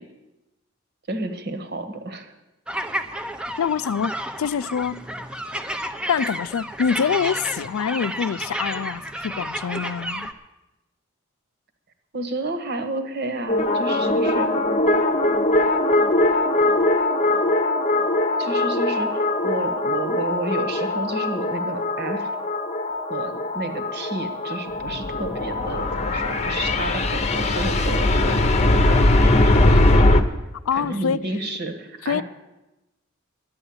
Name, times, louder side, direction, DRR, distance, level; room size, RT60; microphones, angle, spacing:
voice 1, 1.1-2.3 12.1-14.5 18.4-22.3 23.1-30.0 30.7-32.2, right 2 dB, 55° right, 1.5 m, -31 dB
sound 1, 2.7-10.3, equal, 5° right, 0.7 m, -31 dB
voice 2, 3.6-5.0 6.1-10.3 30.7-31.3 32.0-32.2, left 7 dB, 90° left, 0.4 m, -25 dB
sound 2, 13.5-30.2, left 2 dB, 35° left, 0.9 m, -21 dB
11.0 x 9.8 x 8.6 m
head